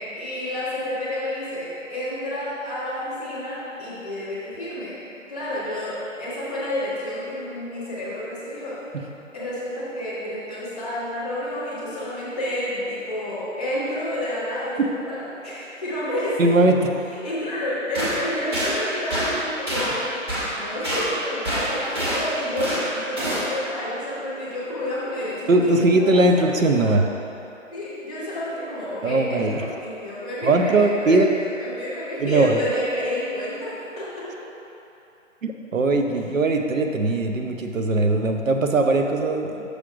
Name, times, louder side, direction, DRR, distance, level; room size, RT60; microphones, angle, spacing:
voice 1, 0.1-5.0 5.3-8.8 9.3-16.4 16.7-16.8 17.1-20.0 20.5-27.0 27.7-33.7 34.0-34.3, left 1 dB, 5° left, -11 dB, 1.0 m, -30 dB
voice 2, 16.4-16.8 25.5-27.0 29.0-29.6 30.4-31.3 32.2-32.6 35.4-39.7, right 2 dB, 80° right, 4 dB, 0.8 m, -20 dB
sound 1, 17.9-18.1 18.5-18.7 19.1-19.3 19.7-19.9 20.3-20.5 20.8-21.0 21.5-22.2 22.6-22.8 23.2-23.4, right 1 dB, 20° right, 1.4 m, -26 dB
6.6 x 5.2 x 4.9 m, 2.9 s
figure-of-eight pair, 165°, 39 cm